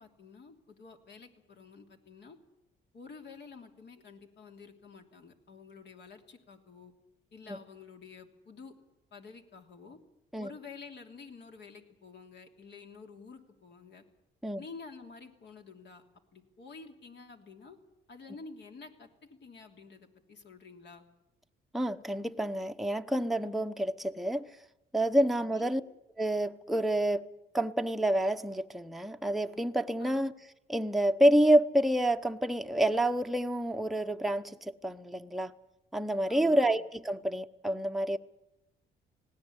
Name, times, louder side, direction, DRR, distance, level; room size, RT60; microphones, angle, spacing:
voice 1, 0.0-2.4 2.9-6.9 7.3-8.8 9.1-10.0 10.4-14.0 14.6-16.0 16.3-17.8 18.1-21.0 25.4-25.7 30.0-30.3 36.3-36.7, left 4 dB, 60° left, 3.1 m, -50 dB
voice 2, 21.7-24.5 24.9-25.8 26.2-27.3 27.5-30.3 30.7-35.5 35.9-38.2, right 1 dB, ahead, 0.8 m, -28 dB
19.0 x 17.0 x 9.8 m
cardioid pair, 90°, 20 cm